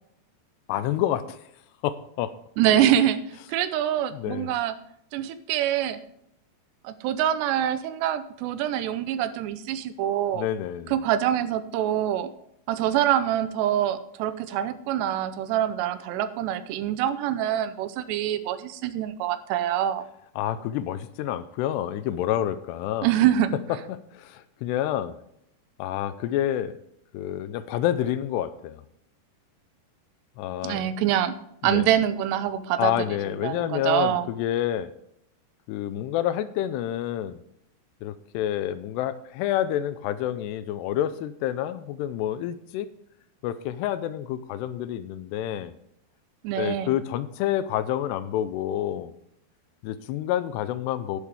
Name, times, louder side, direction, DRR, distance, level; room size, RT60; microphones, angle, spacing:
voice 1, 0.7-1.4 1.8-2.3 4.1-4.5 10.3-10.9 20.4-23.1 23.9-25.2 25.8-26.7 27.1-28.8 30.4-30.9 31.6-31.9 32.8-34.9 35.7-37.4 38.0-42.9 43.4-45.7 46.6-49.1 49.8-51.2, left 11 dB, 85° left, 13 dB, 2.8 m, -28 dB
voice 2, 2.6-3.2 3.5-4.7 5.1-6.0 6.8-10.5 10.9-12.3 12.7-20.0 23.0-23.5 30.6-31.3 31.6-32.9 33.4-34.3 46.4-46.9, right 11 dB, 90° right, 12 dB, 2.9 m, -25 dB
11.0 x 10.5 x 3.5 m, 0.75 s
omnidirectional pair, 4.8 m